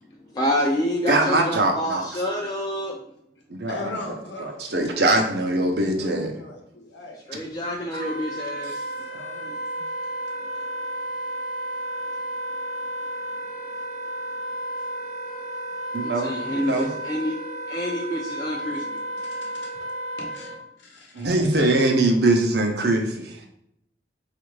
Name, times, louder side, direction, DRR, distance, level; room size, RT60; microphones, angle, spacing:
voice 1, 0.3-3.0 7.3-8.7 16.0-17.3 17.7-18.8, left 1 dB, 20° left, -2 dB, 0.3 m, -27 dB
voice 2, 1.1-2.2 3.5-3.8 4.4-6.3 7.9-8.1 8.6-8.8 15.9-16.9 21.1-23.5, right 2 dB, 60° right, 3 dB, 0.6 m, -22 dB
voice 3, 3.7-7.2 9.1-9.6 16.3-16.9 18.6-18.9 19.2-19.7 20.2-21.3, left 1 dB, 80° left, 1 dB, 0.8 m, -40 dB
Wind instrument woodwind instrument, 7.9-20.6, right 1 dB, 45° left, 0.9 m, -32 dB
4.2 x 2.4 x 3.1 m, 0.76 s
head